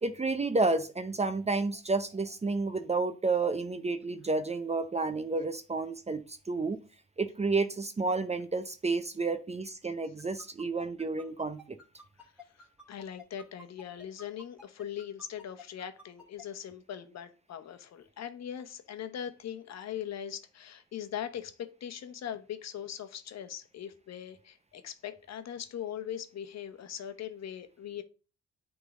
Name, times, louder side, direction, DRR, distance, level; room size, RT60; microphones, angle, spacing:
voice 1, 0.0-6.8 7.2-11.8, right 3 dB, 20° right, 0.7 m, -30 dB
sound 1, 10.2-16.4, left 1 dB, 5° right, 2.6 m, -50 dB
voice 2, 12.2-28.0, left 9 dB, 60° left, 1.1 m, -41 dB
9.2 x 3.8 x 3.7 m
cardioid pair, 90°, 30 cm